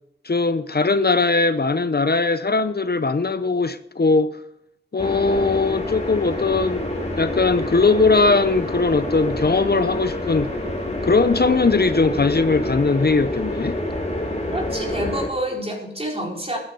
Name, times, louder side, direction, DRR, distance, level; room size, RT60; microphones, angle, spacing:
voice 1, 0.2-4.4 4.9-10.5 11.0-13.8, left 3 dB, 60° left, 0.7 m, -20 dB
sound 1, 5.0-15.3, left 1 dB, 35° left, 2.7 m, -27 dB
voice 2, 14.5-16.6, right 1 dB, 30° right, 4.5 m, -28 dB
13.5 x 9.9 x 5.5 m
wide cardioid pair, 55°, 19 cm